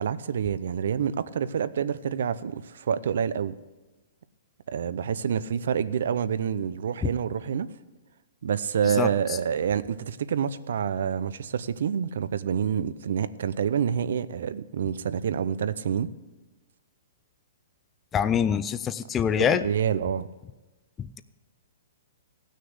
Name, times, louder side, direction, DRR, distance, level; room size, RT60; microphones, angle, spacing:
voice 1, 0.0-3.6 4.7-7.7 8.4-16.1 19.4-20.3, right 8 dB, 70° right, 15 dB, 0.6 m, -27 dB
voice 2, 18.1-19.7 21.0-21.2, left 8 dB, 15° left, 12 dB, 0.4 m, -25 dB
16.0 x 6.4 x 8.0 m, 1.2 s
hypercardioid pair, 160°, 0 cm